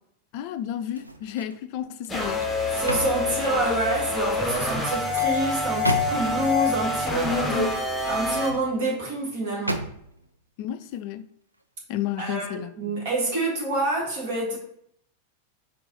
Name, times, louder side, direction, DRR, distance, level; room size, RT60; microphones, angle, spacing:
voice 1, 0.3-2.5 7.6-7.7 10.6-11.3 11.9-12.7, left 11 dB, 45° left, 0.3 m, -32 dB
sound 1, 0.9-1.6 2.0-4.0 4.7-6.5 8.3-9.0 9.7-10.3 10.8-11.0, right 1 dB, 85° right, 0.3 m, -34 dB
sound 2, 2.1-8.5, left 3 dB, 10° left, 0.9 m, -26 dB
voice 2, 2.7-7.7 8.0-9.9 12.2-12.5 12.8-14.6, right 2 dB, 50° right, 1.6 m, -27 dB
4.6 x 2.5 x 3.9 m
figure-of-eight pair, 90°, 0 cm